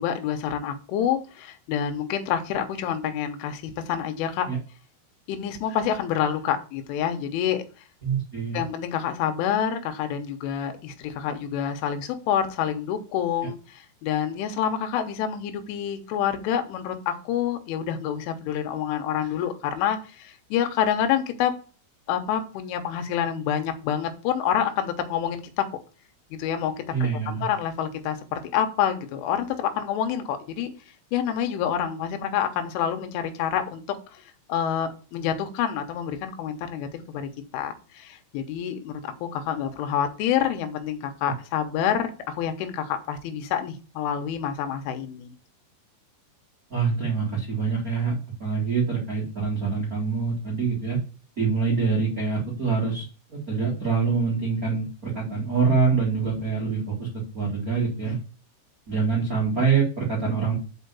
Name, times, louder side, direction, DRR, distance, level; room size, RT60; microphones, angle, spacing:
voice 1, 0.0-4.5 5.3-7.6 8.5-21.5 22.1-25.7 26.4-26.9 27.3-30.7 31.1-34.2 34.5-45.3, left 9 dB, 85° left, 7 dB, 3.4 m, -27 dB
voice 2, 8.0-8.6 26.9-27.4 46.7-51.0 51.4-58.2 58.9-60.5, right 5 dB, 90° right, -4 dB, 0.7 m, -25 dB
5.6 x 5.6 x 6.8 m, 0.36 s
omnidirectional pair, 5.4 m